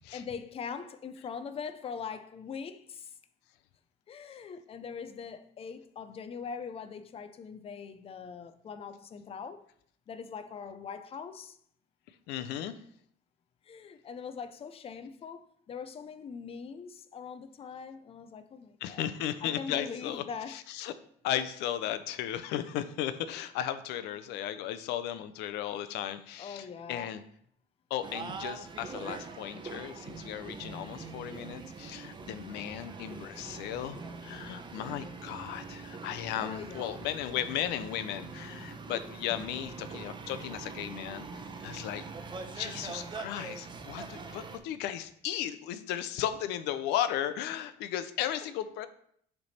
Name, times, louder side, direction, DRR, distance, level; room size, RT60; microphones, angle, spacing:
voice 1, 0.1-3.2 4.1-9.6 10.1-11.6 13.6-19.1 19.4-20.6 26.4-27.2 36.4-37.0 48.2-48.3, left 6 dB, 35° left, 0.5 m, -42 dB
voice 2, 12.3-12.8 18.8-20.9 21.2-27.2 27.9-42.0 42.5-48.9, left 11 dB, 90° left, 0.5 m, -35 dB
sound 1, 28.0-44.6, right 4 dB, 25° right, 0.7 m, -43 dB
6.8 x 3.4 x 4.1 m
cardioid pair, 110°, 17 cm